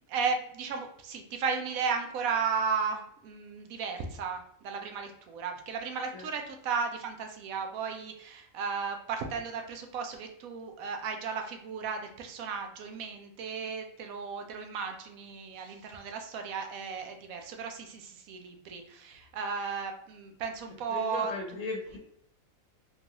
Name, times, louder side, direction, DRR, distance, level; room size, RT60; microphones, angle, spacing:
voice 1, 0.1-21.3, right 5 dB, 80° right, 5 dB, 1.0 m, -35 dB
voice 2, 20.9-22.0, left 3 dB, 75° left, 0 dB, 1.1 m, -36 dB
3.8 x 2.3 x 2.9 m, 0.68 s
omnidirectional pair, 1.4 m